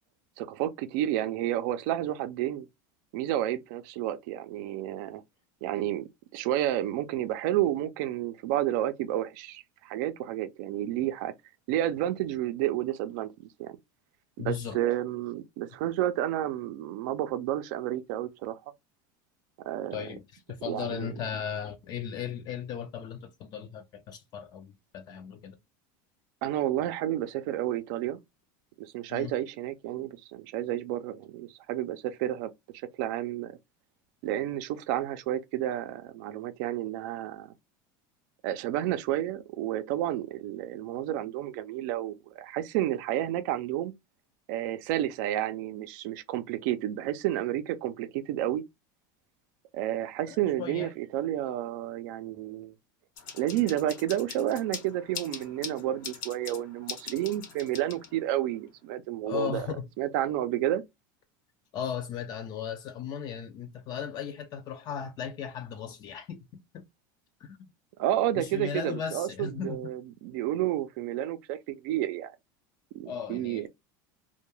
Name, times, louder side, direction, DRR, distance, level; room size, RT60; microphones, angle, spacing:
voice 1, 0.4-2.7 3.1-5.2 5.6-11.3 11.7-13.8 14.4-18.6 19.7-20.0 20.7-21.1 26.4-28.2 28.8-32.5 33.0-33.6 34.2-37.5 38.4-43.9 44.5-48.6 49.7-52.7 53.3-59.7 60.0-60.8 68.0-72.3 72.9-73.7, right 13 dB, 70° right, 0.4 m, -31 dB
voice 2, 14.4-14.8 19.9-25.6 29.1-29.3 50.3-50.9 59.2-59.9 61.7-66.5 66.7-66.8 67.4-67.6 68.3-69.9 73.1-73.7, left 8 dB, 40° left, 0.4 m, -36 dB
sound 1, 53.2-58.4, left 7 dB, 85° left, 0.9 m, -42 dB
2.2 x 2.2 x 3.0 m
supercardioid pair, 140°, 10 cm